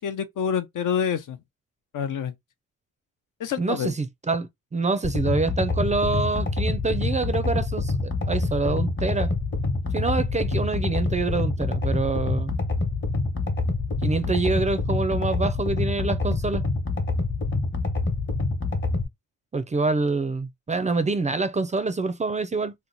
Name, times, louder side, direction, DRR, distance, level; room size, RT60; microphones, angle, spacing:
voice 1, 0.0-1.4 1.9-2.3 3.4-3.9, left 7 dB, 75° left, 0.7 m, -27 dB
voice 2, 3.6-8.0 8.3-9.3 9.9-12.6 14.0-16.7 19.5-22.7, right 3 dB, 25° right, 0.4 m, -26 dB
sound 1, 5.0-19.0, left 3 dB, 35° left, 1.0 m, -26 dB
2.9 x 2.1 x 3.8 m
cardioid pair, 105°, 32 cm